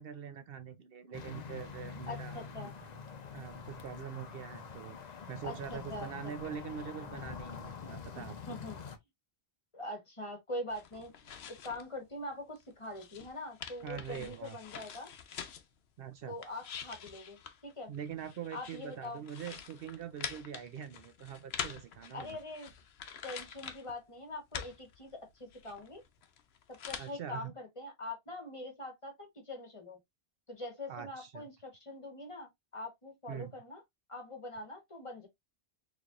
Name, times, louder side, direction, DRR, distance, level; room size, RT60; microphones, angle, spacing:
voice 1, 0.0-2.7 3.3-5.0 5.3-8.6 13.8-14.6 16.0-16.3 17.9-22.4 27.0-27.5 30.9-31.4 33.3-33.5, right 8 dB, 65° right, 0.7 m, -43 dB
sound 1, 1.1-9.0, left 6 dB, 50° left, 0.7 m, -45 dB
voice 2, 2.1-2.8 5.4-6.1 8.1-8.8 9.7-11.1 11.5-15.1 16.3-17.9 18.5-19.2 22.1-22.7 23.2-26.0 26.7-30.0 30.5-33.8 34.1-35.3, left 2 dB, 30° left, 1.1 m, -43 dB
sound 2, 10.7-11.9 12.2-15.7 16.2-24.0 24.3-27.1, left 8 dB, 75° left, 0.9 m, -46 dB
4.1 x 3.3 x 2.4 m
omnidirectional pair, 1.1 m